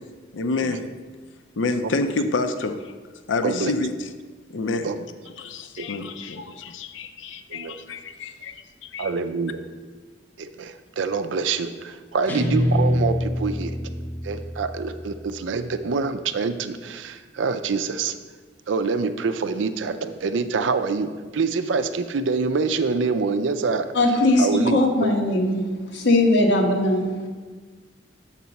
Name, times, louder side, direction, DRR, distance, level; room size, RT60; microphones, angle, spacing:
voice 1, 0.3-0.9 1.6-2.9 3.3-3.9 4.5-4.9 5.4-8.5 8.9-9.1, left 3 dB, 90° left, 8 dB, 0.5 m, -28 dB
voice 2, 9.0-9.6 10.4-13.8 14.2-18.2 18.7-23.9 24.4-25.1, right 4 dB, 80° right, 10 dB, 0.5 m, -26 dB
Guitar, 12.3-15.5, equal, 10° left, 0.7 m, -25 dB
voice 3, 23.9-25.6 25.9-27.0, left 2 dB, 70° left, 1 dB, 1.2 m, -19 dB
7.4 x 4.1 x 5.7 m, 1.4 s
head